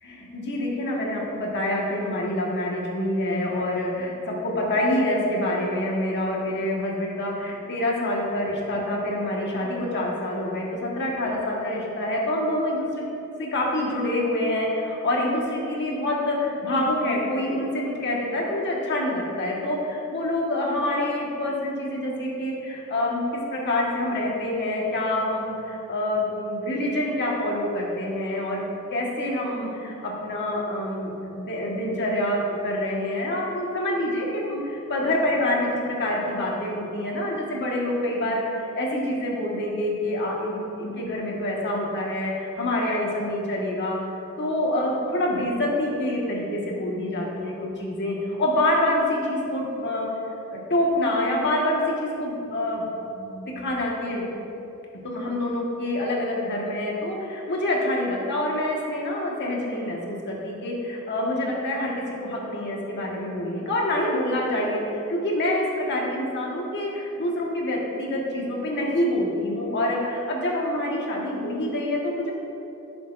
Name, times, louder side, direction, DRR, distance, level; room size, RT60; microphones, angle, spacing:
voice 1, 0.0-13.1 13.4-28.6 28.9-44.0 44.4-50.1 50.5-54.2 55.0-72.3, left 1 dB, 55° left, -3 dB, 1.5 m, -26 dB
14.5 x 6.9 x 2.6 m, 3.0 s
head